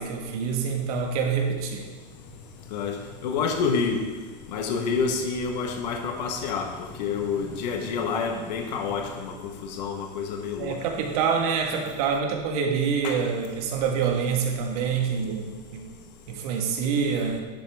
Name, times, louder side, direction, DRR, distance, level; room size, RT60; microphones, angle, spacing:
voice 1, 0.0-1.9 10.6-15.9 16.3-17.4, right 6 dB, 60° right, 2 dB, 1.6 m, -26 dB
sound 1, 2.1-9.3, left 3 dB, 65° left, 3.0 m, -47 dB
voice 2, 2.7-4.1 4.5-6.7 7.0-9.3 9.6-10.7 13.0-13.2, left 5 dB, 85° left, 3 dB, 1.3 m, -28 dB
11.0 x 7.5 x 3.6 m, 1.4 s
supercardioid pair, 170°, 21 cm